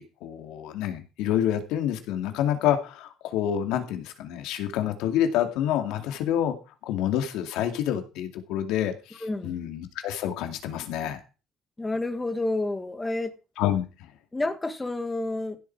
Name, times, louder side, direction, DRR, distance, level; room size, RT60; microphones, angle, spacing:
voice 1, 0.0-6.6 6.9-11.2 13.6-13.8, left 10 dB, 85° left, 2.5 m, -28 dB
voice 2, 9.2-9.6 11.8-13.3 14.3-15.6, left 2 dB, 10° left, 1.7 m, -29 dB
16.0 x 7.8 x 4.7 m
cardioid pair, 145°, 0 cm